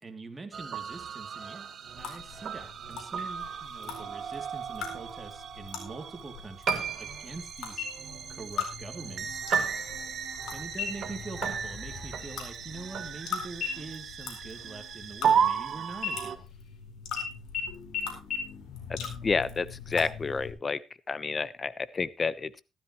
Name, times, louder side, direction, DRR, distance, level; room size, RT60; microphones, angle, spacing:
voice 1, 0.0-7.8 8.3-9.4 10.5-16.5, right 3 dB, 25° right, 4 dB, 2.8 m, -44 dB
sound 1, 0.5-16.4, right 7 dB, 60° right, 1.7 m, -34 dB
sound 2, 2.0-20.5, left 7 dB, 85° left, 4.4 m, -42 dB
sound 3, 7.8-8.4 8.8-8.9 9.5-10.0 10.7-11.2 11.6-11.9 12.2-13.3 13.6-15.6 16.0-16.8 17.2-17.3 17.5-17.6 17.9-18.0 18.3-18.4, left 7 dB, 65° left, 4.8 m, -37 dB
voice 2, 18.9-20.8 21.1-22.6, left 4 dB, 35° left, 17 dB, 0.9 m, -30 dB
15.0 x 12.5 x 3.1 m, 0.26 s
cardioid pair, 90°, 0 cm